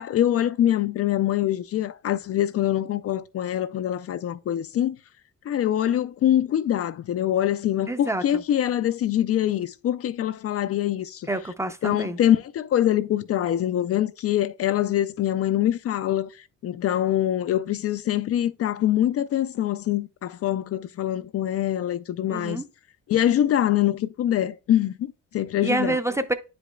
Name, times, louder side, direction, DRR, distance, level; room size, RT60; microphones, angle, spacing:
voice 1, 0.0-5.0 5.5-11.3 11.8-16.3 16.6-22.6 23.1-26.0, left 11 dB, 50° left, 0.4 m, -24 dB
voice 2, 7.9-8.4 11.3-12.2 22.3-22.7 25.6-26.3, right 2 dB, 10° right, 0.5 m, -27 dB
9.1 x 5.1 x 2.3 m
cardioid pair, 90°, 30 cm